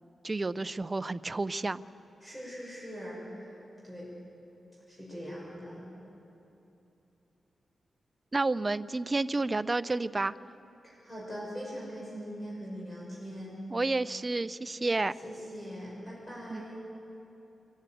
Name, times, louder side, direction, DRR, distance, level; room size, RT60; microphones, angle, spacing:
voice 1, 0.2-1.8 8.3-10.3 13.7-15.1 16.5-16.6, right 3 dB, 25° right, 14 dB, 0.5 m, -30 dB
voice 2, 2.2-3.6 3.8-4.1 4.9-5.8 10.8-13.6 15.2-16.8, equal, 20° left, -6 dB, 6.4 m, -41 dB
24.0 x 14.5 x 9.1 m, 2.9 s
wide cardioid pair, 125°, 0 cm